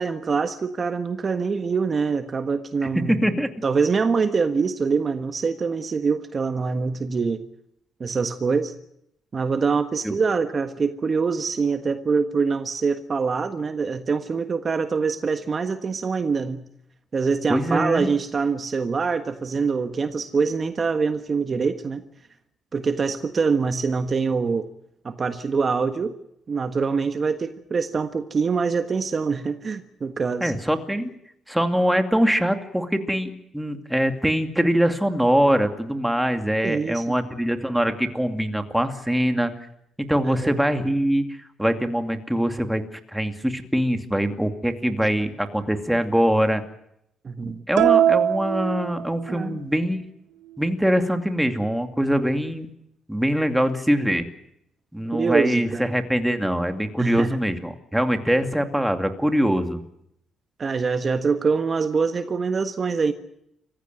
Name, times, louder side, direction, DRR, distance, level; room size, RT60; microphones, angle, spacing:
voice 1, 0.0-3.2 3.6-7.4 8.0-8.7 9.3-16.6 17.1-22.0 22.7-24.7 25.0-26.1 26.5-30.5 36.6-37.1 40.2-40.6 47.2-47.6 49.3-49.6 55.1-55.8 57.0-57.4 60.6-63.1, right 5 dB, 40° right, 9 dB, 1.5 m, -24 dB
voice 2, 2.9-3.5 10.0-10.2 17.5-18.1 30.4-31.1 31.5-39.5 40.0-42.8 43.1-46.6 47.4-50.0 50.6-52.7 53.1-54.2 54.9-59.8, equal, 5° right, 7 dB, 2.5 m, -23 dB
sound 1, 47.8-49.6, right 10 dB, 85° right, 1.4 m, -21 dB
26.5 x 15.5 x 9.2 m, 0.78 s
cardioid pair, 90°, 0 cm